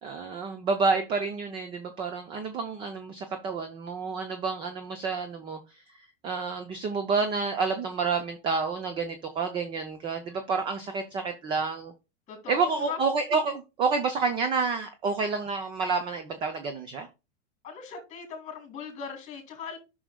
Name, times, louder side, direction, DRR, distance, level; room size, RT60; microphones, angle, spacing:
voice 1, 0.0-5.6 6.2-11.9 12.5-17.1, right 4 dB, 15° right, 0.5 m, -29 dB
voice 2, 12.3-13.0 17.6-19.8, left 6 dB, 20° left, 2.9 m, -39 dB
9.9 x 6.2 x 2.2 m
supercardioid pair, 150°, 36 cm